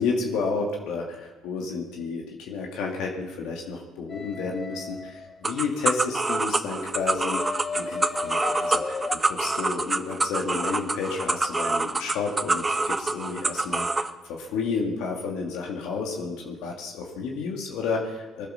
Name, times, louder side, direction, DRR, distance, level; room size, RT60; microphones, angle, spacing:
voice 1, 0.0-7.4 7.7-18.5, left 4 dB, 75° left, 0 dB, 2.1 m, -31 dB
sound 1, 4.1-5.5 6.9-9.2, left 3 dB, 35° left, 1.4 m, -33 dB
sound 2, 5.4-14.1, right 3 dB, 20° right, 1.0 m, -26 dB
20.5 x 10.5 x 6.5 m, 1.3 s
supercardioid pair, 65°, 0 cm